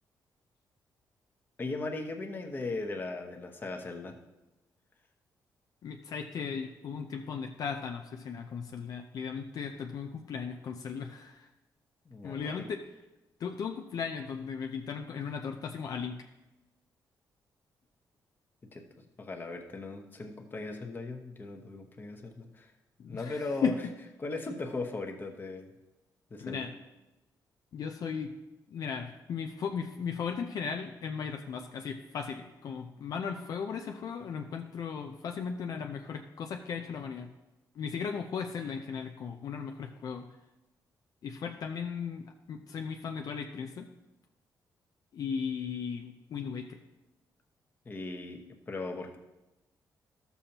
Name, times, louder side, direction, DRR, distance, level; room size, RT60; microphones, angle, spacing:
voice 1, 1.6-4.2 12.0-12.7 18.7-18.8 19.2-22.7 23.1-23.7 24.2-25.7 26.3-26.7 47.8-49.2, left 3 dB, 30° left, 3 dB, 1.0 m, -38 dB
voice 2, 5.8-11.5 12.2-12.8 13.4-16.2 23.0-23.7 26.4-26.7 27.7-28.3 28.7-37.3 37.8-40.3 41.2-43.9 45.1-46.8, left 6 dB, 65° left, 3 dB, 0.5 m, -36 dB
13.0 x 7.0 x 2.9 m, 1.0 s
cardioid pair, 130°, 7 cm